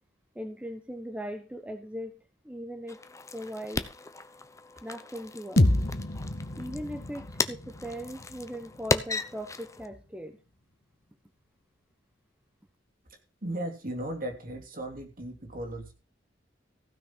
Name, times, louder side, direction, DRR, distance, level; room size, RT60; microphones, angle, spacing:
voice 1, 0.3-2.1 2.4-3.0 3.3-3.9 4.8-5.6 6.6-10.4, equal, 5° right, 7 dB, 1.0 m, -39 dB
sound 1, 2.9-9.9, left 3 dB, 15° left, 0.8 m, -36 dB
sound 2, 5.6-9.5, left 1 dB, 55° left, 1.5 m, -29 dB
voice 2, 13.4-15.9, right 1 dB, 50° right, 4 dB, 3.2 m, -36 dB
15.5 x 6.2 x 6.1 m, 0.33 s
head